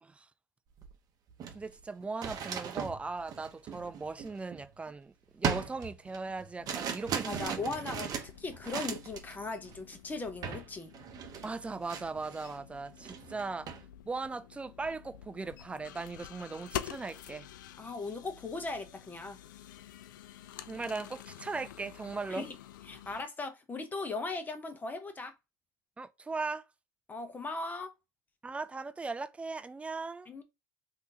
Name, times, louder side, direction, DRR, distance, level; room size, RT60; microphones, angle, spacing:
sound 1, 0.8-0.9 1.3-4.9 5.4-9.3 9.6-9.9 10.4-10.7 10.9-12.6 13.0-13.8, right 7 dB, 35° right, 0.9 m, -38 dB
voice 1, 1.5-7.8 11.4-13.7 14.1-17.5 20.7-22.5 26.0-26.6 28.4-30.3, right 3 dB, 10° right, 0.4 m, -38 dB
sound 2, 6.6-23.2, left 11 dB, 75° left, 0.4 m, -48 dB
voice 2, 7.3-10.9 17.8-19.4 22.3-22.5 22.9-25.3 27.1-27.9 30.3-30.4, left 3 dB, 15° left, 0.9 m, -38 dB
3.5 x 2.7 x 2.8 m
hypercardioid pair, 95°, 10 cm